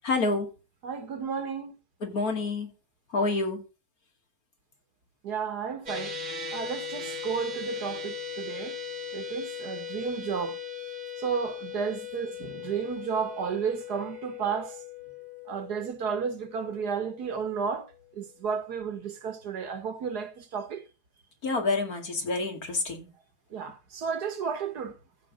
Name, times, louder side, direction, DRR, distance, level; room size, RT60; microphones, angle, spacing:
voice 1, 0.0-0.5 2.0-2.7 3.1-3.6 21.4-23.1, left 3 dB, 55° left, 2.7 m, -28 dB
voice 2, 0.8-1.7 5.2-6.2 6.5-8.8 9.1-10.6 11.2-14.8 15.5-20.8 23.5-24.9, right 6 dB, 65° right, 1.8 m, -32 dB
sound 1, 5.9-18.2, left 6 dB, 30° right, 1.2 m, -39 dB
14.5 x 5.2 x 5.1 m
omnidirectional pair, 1.9 m